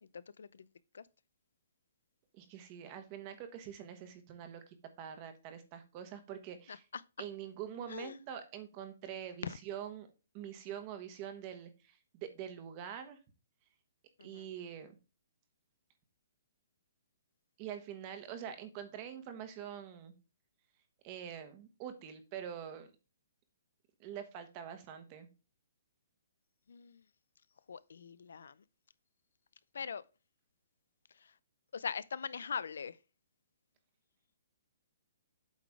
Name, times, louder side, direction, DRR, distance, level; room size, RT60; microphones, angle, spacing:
voice 1, 0.0-0.6 0.9-1.0 6.7-7.0 7.9-8.1 9.4-9.6 14.2-14.4 26.7-27.0 27.7-28.5 29.7-30.0 31.2-31.3 31.7-33.0, left 6 dB, 80° left, 0.4 m, -41 dB
voice 2, 2.3-6.9 7.2-10.1 10.3-13.2 14.2-15.0 17.6-20.1 21.0-22.9 24.0-25.3, right 9 dB, 30° right, 1.2 m, -45 dB
8.3 x 3.9 x 4.8 m
hypercardioid pair, 160°, 0 cm